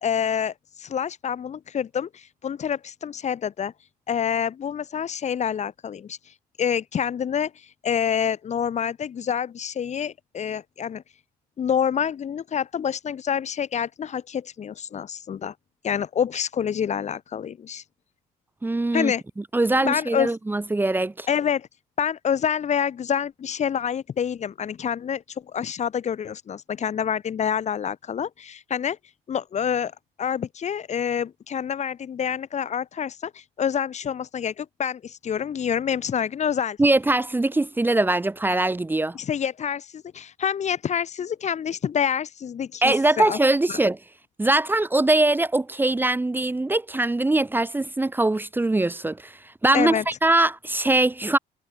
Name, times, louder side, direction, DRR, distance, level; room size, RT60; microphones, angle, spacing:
voice 1, 0.0-3.7 4.1-6.2 6.6-7.5 7.8-11.0 11.6-15.5 15.8-17.8 18.9-19.2 19.8-20.3 21.3-21.7 22.0-25.2 25.5-29.0 29.3-29.9 30.2-36.8 39.1-43.4 43.7-43.8 49.7-50.0, left 8 dB, 40° left, 2.0 m, -27 dB
voice 2, 18.6-19.1 19.5-21.3 36.8-39.2 42.8-44.0 44.4-51.4, right 2 dB, 10° right, 1.2 m, -22 dB
cardioid pair, 110°, 17 cm